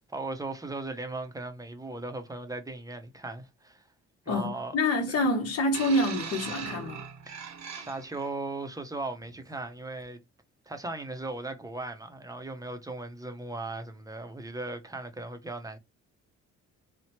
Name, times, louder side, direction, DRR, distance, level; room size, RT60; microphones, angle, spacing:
voice 1, 0.1-3.8 4.3-4.8 5.1-5.3 7.3-7.5 7.8-10.2 10.7-15.8, right 2 dB, 10° right, 0.6 m, -37 dB
voice 2, 4.3-7.0, left 1 dB, 55° left, 1.0 m, -27 dB
sound 1, 5.7-8.3 9.2-9.4, right 7 dB, 65° right, 0.8 m, -40 dB
3.0 x 2.1 x 2.8 m
cardioid pair, 90°, 30 cm